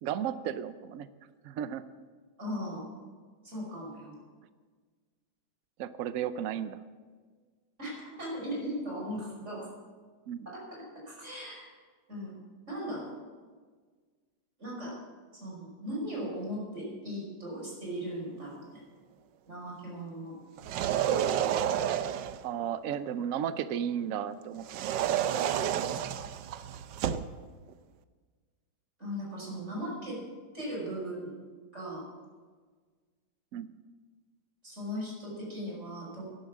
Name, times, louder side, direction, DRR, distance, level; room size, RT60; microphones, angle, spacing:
voice 1, 0.0-1.1 1.4-1.8 5.8-6.8 10.3-10.5 22.4-25.2 33.5-33.7, right 9 dB, 85° right, 13 dB, 0.7 m, -34 dB
voice 2, 2.4-2.9 3.4-4.1 7.8-9.7 10.5-11.7 12.1-12.3 12.7-13.1 14.6-15.0 15.3-18.8 19.5-20.4 29.0-30.2 30.5-31.4 31.7-32.1 34.6-36.3, equal, 35° right, -3 dB, 5.9 m, -38 dB
sound 1, 20.6-22.5 24.6-27.3, right 10 dB, 70° right, 1.2 m, -30 dB
13.5 x 11.0 x 7.3 m, 1.5 s
omnidirectional pair, 2.2 m